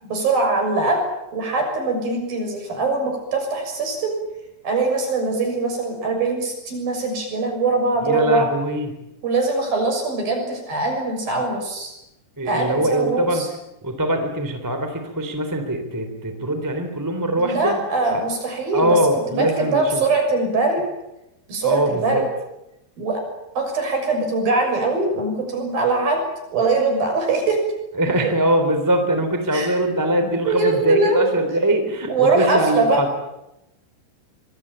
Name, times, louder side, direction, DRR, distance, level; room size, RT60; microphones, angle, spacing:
voice 1, 0.0-1.0 1.3-4.1 4.6-8.5 9.2-11.9 12.5-13.5 17.4-19.0 19.3-20.8 21.5-22.2 23.0-23.2 23.6-26.2 26.5-27.6 29.5-29.7 30.5-31.3 32.1-33.0, right 3 dB, 55° right, 4 dB, 8.2 m, -22 dB
voice 2, 8.0-8.9 12.4-13.4 13.8-17.8 18.1-18.2 18.5-20.0 21.6-22.2 27.9-33.1, right 1 dB, 5° right, 6 dB, 2.4 m, -22 dB
26.0 x 22.0 x 8.9 m, 0.89 s
omnidirectional pair, 5.2 m